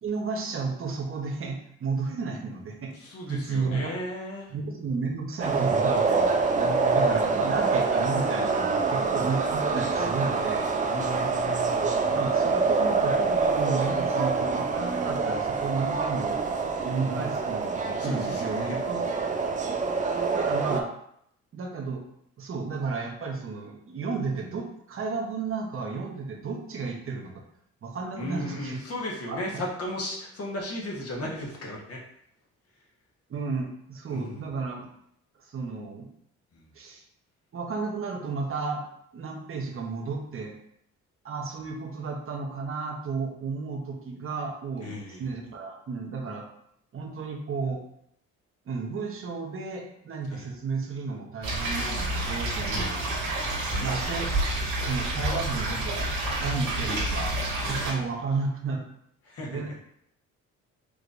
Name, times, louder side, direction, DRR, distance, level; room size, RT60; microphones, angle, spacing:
voice 1, 0.0-2.9 3.3-3.8 4.5-6.3 6.9-10.7 12.1-16.4 16.8-19.1 20.3-20.9 21.5-22.0 22.4-27.3 27.8-28.8 29.3-29.6 33.3-34.9 35.4-36.1 36.7-37.0 37.5-38.8 39.1-40.5 41.2-46.5 46.9-47.8 48.7-53.0 53.8-54.4 54.8-56.1 56.4-57.3 57.6-58.9 59.5-59.8, right 4 dB, 45° right, 0 dB, 1.0 m, -32 dB
voice 2, 2.9-4.5 6.5-7.4 10.9-12.2 17.0-17.3 18.0-18.8 28.2-32.0 34.1-34.4 36.5-36.7 44.8-45.3 50.3-50.5 52.6-53.1 53.7-54.1 57.6-58.1 59.2-59.6, left 1 dB, 50° left, -2 dB, 1.4 m, -36 dB
sound 1, 5.4-20.8, right 4 dB, 25° right, 0.5 m, -26 dB
sound 2, 51.4-57.9, right 1 dB, 85° right, 1.7 m, -29 dB
4.8 x 3.3 x 2.6 m, 0.72 s
cardioid pair, 90°, 30 cm